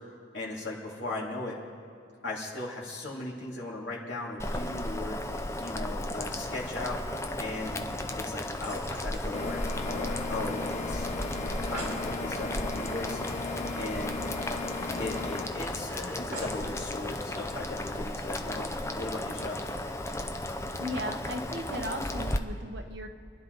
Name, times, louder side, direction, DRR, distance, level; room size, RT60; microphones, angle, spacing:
voice 1, 0.3-1.6 2.2-5.2 5.6-7.0 7.4-7.8 8.2-9.6 9.9-11.1 11.3-13.2 13.8-14.2 15.0-19.6, left 2 dB, 65° left, -5 dB, 3.1 m, -37 dB
Boiling, 4.4-22.4, left 1 dB, 15° left, 0.6 m, -35 dB
sound 1, 7.9-10.5 10.8-10.9 11.2-11.3 11.5-12.0 13.6-13.7 14.0-14.1 14.7-15.7 16.3-16.7 17.4-17.5, right 1 dB, 45° right, 4.7 m, -45 dB
sound 2, 9.3-15.4, left 3 dB, 35° left, 0.9 m, -36 dB
voice 2, 20.8-23.1, equal, 65° right, 4 dB, 1.1 m, -36 dB
26.5 x 10.5 x 4.0 m, 2.5 s
head